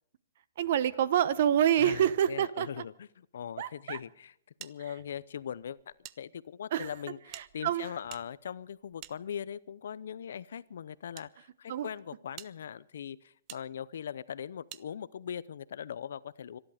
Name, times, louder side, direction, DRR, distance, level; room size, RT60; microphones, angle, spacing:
voice 1, 0.6-2.7 3.6-4.0 6.7-6.9 7.3-7.9 11.7-11.9, right 10 dB, 50° right, 17 dB, 0.8 m, -27 dB
voice 2, 1.8-4.3 4.6-16.6, left 8 dB, 65° left, 19 dB, 0.6 m, -41 dB
sound 1, 4.6-6.2 6.5-6.6 7.3-9.7 10.5-11.3 11.8-11.9 12.3-12.5 13.5-13.6 14.7-14.9, right 16 dB, 25° right, 0.5 m, -50 dB
25.0 x 11.5 x 5.0 m, 0.71 s
hypercardioid pair, 160°, 0 cm